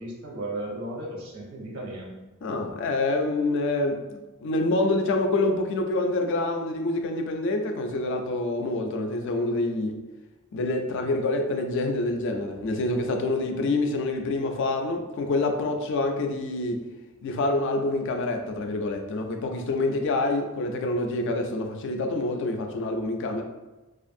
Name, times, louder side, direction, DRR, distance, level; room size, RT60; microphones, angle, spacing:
voice 1, 0.0-2.1, right 1 dB, 80° right, -2 dB, 0.8 m, -35 dB
voice 2, 2.4-10.0 10.5-16.8 17.2-23.4, left 2 dB, 60° left, 4 dB, 0.3 m, -27 dB
2.5 x 2.4 x 2.5 m, 1.1 s
head